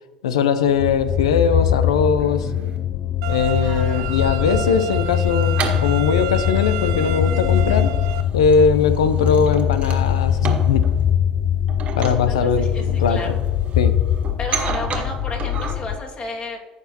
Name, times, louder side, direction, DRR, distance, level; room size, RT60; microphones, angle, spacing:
voice 1, 0.2-2.5 3.3-5.6 5.8-7.9 8.3-10.9 12.0-13.4 13.8-13.9, left 5 dB, 90° left, 11 dB, 0.7 m, -20 dB
sound 1, 0.7-2.8 3.3-15.7, right 3 dB, 45° right, 1.6 m, -33 dB
sound 2, 0.8-16.0, left 10 dB, 55° left, 0.3 m, -22 dB
sound 3, 3.2-8.2, right 13 dB, 80° right, 0.4 m, -31 dB
voice 2, 3.5-4.2 12.0-13.4 14.4-16.6, left 3 dB, 40° left, -1 dB, 2.3 m, -33 dB
14.5 x 6.0 x 3.0 m, 1.3 s
hypercardioid pair, 75°, 3 cm